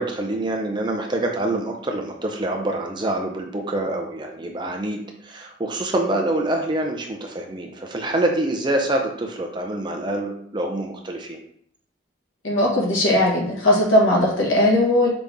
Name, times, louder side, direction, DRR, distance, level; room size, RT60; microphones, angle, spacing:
voice 1, 0.0-11.4, right 1 dB, 20° right, 2 dB, 0.5 m, -26 dB
voice 2, 12.4-15.1, left 1 dB, 75° left, -4 dB, 1.6 m, -18 dB
5.1 x 2.9 x 3.5 m, 0.64 s
head